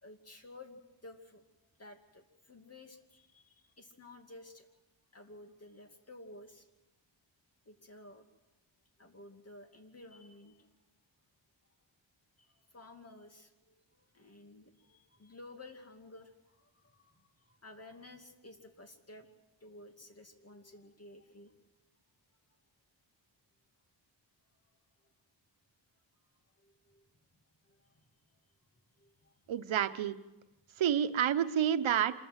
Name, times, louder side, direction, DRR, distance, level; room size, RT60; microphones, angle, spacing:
voice 1, 0.0-4.7 5.1-6.7 7.7-8.3 9.0-10.7 12.4-19.3 19.6-21.5 25.0-25.1 26.6-28.4 28.7-29.5, left 2 dB, 30° left, 5 dB, 2.5 m, -54 dB
voice 2, 29.5-30.2 30.8-32.1, right 9 dB, 85° right, 10 dB, 1.0 m, -29 dB
26.5 x 14.0 x 8.0 m, 1.0 s
wide cardioid pair, 110°, 46 cm